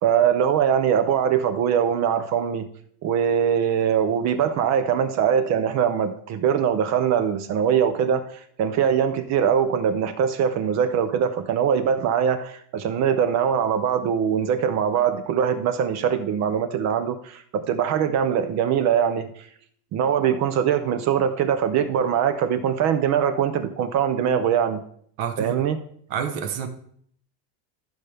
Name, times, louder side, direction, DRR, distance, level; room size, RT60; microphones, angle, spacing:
voice 1, 0.0-2.7 3.0-8.2 8.6-19.3 19.9-24.8 25.4-25.8, right 8 dB, 35° right, 0.5 m, -22 dB
voice 2, 25.2-25.7 26.1-26.7, right 7 dB, 60° right, 1.2 m, -28 dB
14.0 x 5.6 x 3.4 m
cardioid pair, 155°, 48 cm